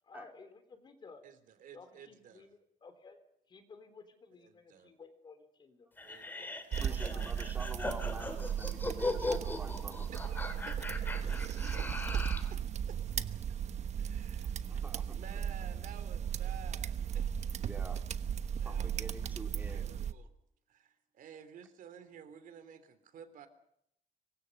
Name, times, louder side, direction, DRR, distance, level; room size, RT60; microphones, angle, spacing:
voice 1, 0.0-1.3 1.7-3.2 3.5-5.9 6.2-6.6 6.9-7.4 8.3-8.6 9.0-9.4, left 4 dB, 35° left, 9 dB, 3.6 m, -55 dB
voice 2, 1.2-2.5 4.4-4.9 6.0-6.8 10.1-10.8 11.5-12.2 12.5-12.6 12.9-13.3 14.0-14.7 15.0-17.5 18.6-19.1 19.7-20.3 20.7-23.5, right 8 dB, 75° right, 11 dB, 3.3 m, -53 dB
sound 1, 6.0-12.5, left 2 dB, 15° left, 3.0 m, -39 dB
sound 2, 6.7-20.1, right 8 dB, 50° right, 1.1 m, -36 dB
voice 3, 6.8-10.1 14.6-15.2 17.6-18.0 18.6-19.9, right 2 dB, 15° right, 4 dB, 2.6 m, -48 dB
26.0 x 24.0 x 5.4 m, 0.73 s
wide cardioid pair, 180°, 14 cm